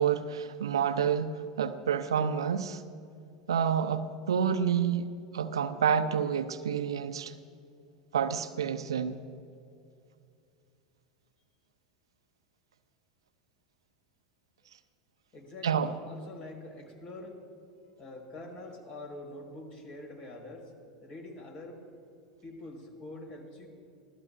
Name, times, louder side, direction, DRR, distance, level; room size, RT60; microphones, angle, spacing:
voice 1, 0.0-2.8 3.5-7.3 8.1-9.2 15.6-15.9, right 7 dB, 80° right, 0.6 m, -29 dB
voice 2, 15.3-17.4 18.0-20.7 21.0-21.8 22.4-23.7, left 2 dB, 40° left, 4.7 m, -45 dB
24.5 x 16.5 x 2.6 m
hypercardioid pair, 85°, 3 cm